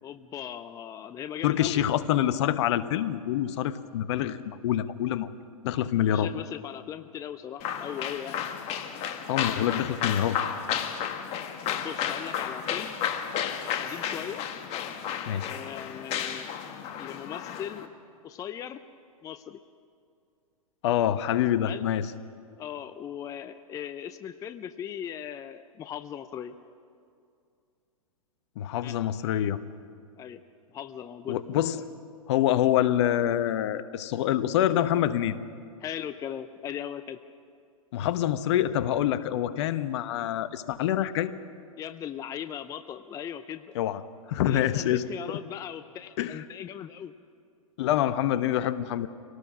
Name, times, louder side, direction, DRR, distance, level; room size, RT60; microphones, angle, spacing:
voice 1, 0.0-1.9 6.1-8.5 11.7-13.0 13.8-14.4 15.4-16.5 17.0-17.9 18.2-18.8 19.2-19.6 21.7-21.9 22.6-26.5 28.8-29.0 30.2-30.4 30.7-31.6 35.8-37.2 41.8-43.8 44.5-47.1, left 9 dB, 20° left, 11 dB, 0.5 m, -38 dB
voice 2, 1.4-5.3 5.6-6.3 9.3-10.4 15.3-15.5 20.8-22.1 28.6-29.6 31.3-31.8 32.3-35.4 37.9-41.3 43.7-44.0 44.3-45.4 46.2-46.4 47.8-49.1, left 11 dB, 50° left, 13 dB, 1.0 m, -26 dB
sound 1, 7.6-17.9, left 8 dB, 35° left, 1.5 m, -32 dB
25.5 x 18.0 x 6.1 m, 2.4 s
hypercardioid pair, 115°, 18 cm